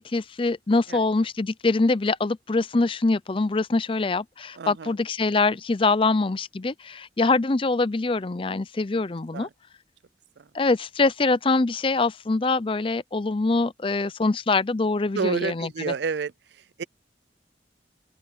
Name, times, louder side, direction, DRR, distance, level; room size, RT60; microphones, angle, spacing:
voice 1, 0.0-9.5 10.5-15.9, left 3 dB, 30° left, 0.5 m, -24 dB
voice 2, 4.5-4.9 9.3-9.5 10.4-10.5 15.1-16.3 16.8-16.9, right 5 dB, 75° right, 0.5 m, -29 dB
open air
head